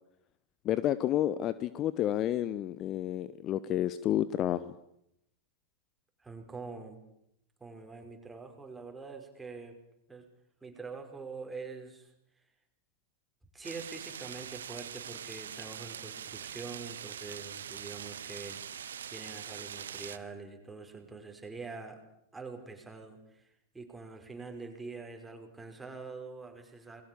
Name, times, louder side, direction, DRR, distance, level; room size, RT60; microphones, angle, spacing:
voice 1, 0.6-4.8, left 12 dB, 35° left, 16 dB, 0.9 m, -30 dB
voice 2, 6.2-7.0 7.6-9.7 10.1-10.2 10.6-12.1 13.5-18.6 19.1-22.0 22.3-27.0, right 4 dB, 10° right, 3 dB, 5.5 m, -45 dB
sound 1, 13.6-20.2, right 8 dB, 65° right, 1.2 m, -43 dB
28.5 x 21.5 x 7.2 m, 0.80 s
figure-of-eight pair, 90°, 0 cm